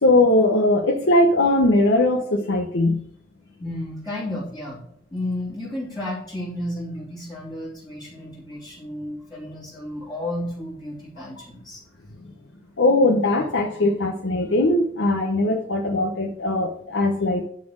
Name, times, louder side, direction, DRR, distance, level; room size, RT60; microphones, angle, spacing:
voice 1, 0.0-3.0 12.8-17.4, left 2 dB, 85° left, 2 dB, 1.0 m, -20 dB
voice 2, 3.6-4.8 5.1-11.8, left 1 dB, 20° left, -8 dB, 2.9 m, -32 dB
11.0 x 4.3 x 6.5 m, 0.66 s
head